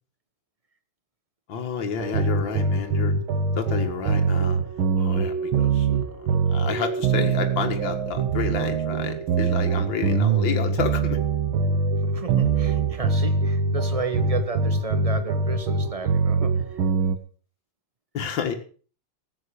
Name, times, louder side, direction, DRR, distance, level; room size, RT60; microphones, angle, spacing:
voice 1, 1.5-3.1 3.5-4.6 5.0-5.9 6.5-11.2 18.1-18.5, left 6 dB, 70° left, 5 dB, 2.4 m, -30 dB
sound 1, 2.0-17.2, right 4 dB, 90° right, 2.0 m, -23 dB
voice 2, 12.0-16.9, right 4 dB, 20° right, 9 dB, 1.2 m, -33 dB
14.5 x 8.4 x 6.8 m, 0.41 s
omnidirectional pair, 2.1 m